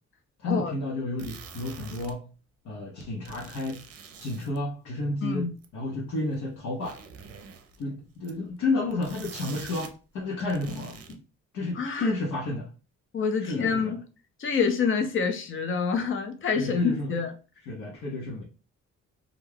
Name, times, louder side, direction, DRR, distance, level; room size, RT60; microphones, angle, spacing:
voice 1, 0.4-2.2 2.6-3.8 4.2-5.5 5.7-7.0 7.8-11.2 11.5-12.7 13.4-13.9 16.6-17.1 17.7-18.4, left 2 dB, 75° left, 0.8 m, -31 dB
sound 1, 1.2-2.1 3.0-4.6 5.6-5.7 6.3-6.4 6.7-7.8 8.2-8.5 8.9-10.0 10.2-11.1, right 6 dB, 50° right, 0.6 m, -45 dB
voice 2, 5.2-5.5 11.8-12.1 13.1-14.0 14.4-17.3, left 5 dB, 45° left, 0.6 m, -27 dB
2.4 x 2.2 x 3.2 m
cardioid pair, 90°, 30 cm